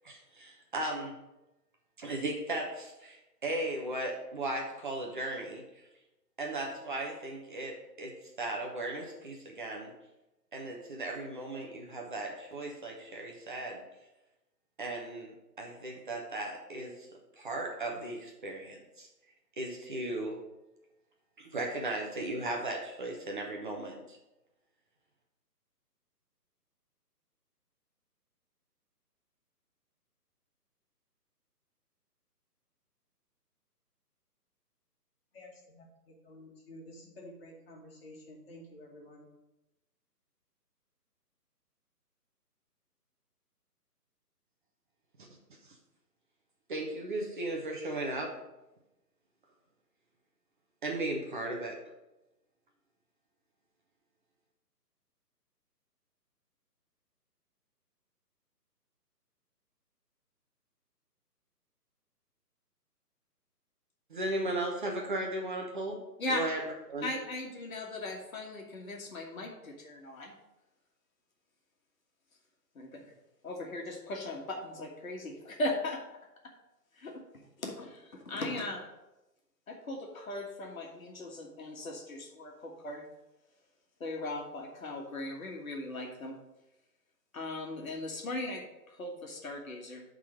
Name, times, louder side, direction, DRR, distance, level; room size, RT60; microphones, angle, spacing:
voice 1, 0.0-1.2 2.0-5.6 6.4-8.1 8.4-9.9 10.5-13.8 14.8-17.1 17.4-19.1 19.6-20.4 21.4-24.2 45.6-45.8 46.7-48.3 50.8-51.8 64.1-66.0 66.3-66.6 66.9-67.1, right 2 dB, 30° right, 0 dB, 0.9 m, -36 dB
voice 2, 35.3-39.3, left 1 dB, 35° left, -1 dB, 2.0 m, -51 dB
voice 3, 67.0-70.3 72.7-73.1 73.4-76.0 76.9-77.2 77.6-78.8 79.7-83.0 84.0-86.3 87.3-90.0, left 1 dB, 55° left, 1 dB, 1.6 m, -38 dB
8.3 x 3.8 x 6.5 m, 0.98 s
figure-of-eight pair, 145°, 49 cm